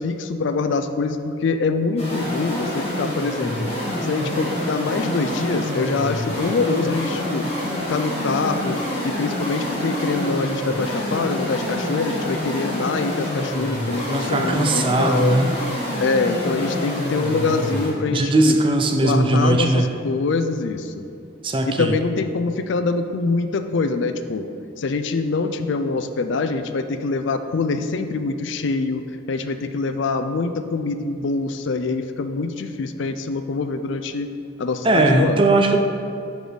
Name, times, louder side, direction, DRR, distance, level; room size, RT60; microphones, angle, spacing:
voice 1, 0.0-3.7 4.0-7.5 7.9-15.4 16.0-18.6 19.0-20.9 21.7-24.5 24.8-29.0 29.3-34.3 34.6-35.4, left 3 dB, 65° left, 9 dB, 0.4 m, -24 dB
sound 1, 2.0-18.0, left 1 dB, 30° left, 1.4 m, -27 dB
voice 2, 14.1-15.5 18.1-19.9 21.4-21.9 34.8-35.8, right 2 dB, 25° right, 4 dB, 0.4 m, -19 dB
6.5 x 4.7 x 5.0 m, 2.6 s
head